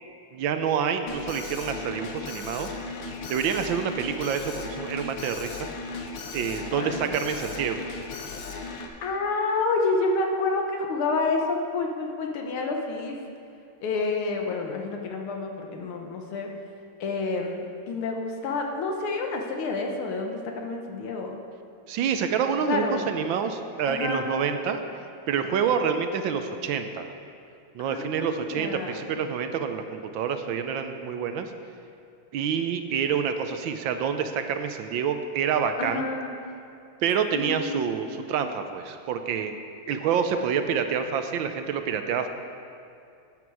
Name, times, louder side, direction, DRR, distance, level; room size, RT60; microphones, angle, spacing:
voice 1, 0.3-2.7 3.3-5.7 6.3-7.9 21.9-24.8 25.3-27.1 27.7-31.5 32.3-36.0 37.0-39.6 39.9-42.3, right 7 dB, 75° right, 7 dB, 1.3 m, -27 dB
Alarm, 1.1-8.9, left 4 dB, 70° left, 1.5 m, -37 dB
voice 2, 6.7-7.1 8.6-13.2 13.8-16.5 17.0-21.4 22.7-23.1 23.9-24.3 27.8-29.2 35.8-36.3 37.3-38.5, left 3 dB, 85° left, 2 dB, 2.0 m, -29 dB
12.0 x 9.0 x 4.7 m, 2.5 s
omnidirectional pair, 2.3 m